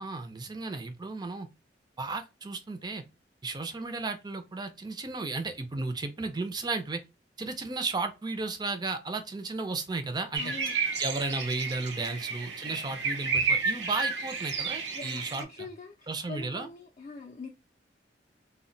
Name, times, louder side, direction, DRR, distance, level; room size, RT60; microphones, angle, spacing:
voice 1, 0.0-1.5 2.0-3.0 3.4-7.0 7.4-10.5 11.0-15.7 16.1-16.7, right 3 dB, 25° right, 0.4 m, -34 dB
sound 1, 10.3-15.4, right 4 dB, 80° right, 0.6 m, -31 dB
voice 2, 10.4-10.7 12.0-13.0 14.9-17.5, left 3 dB, 40° left, 0.4 m, -44 dB
2.2 x 2.1 x 3.8 m
head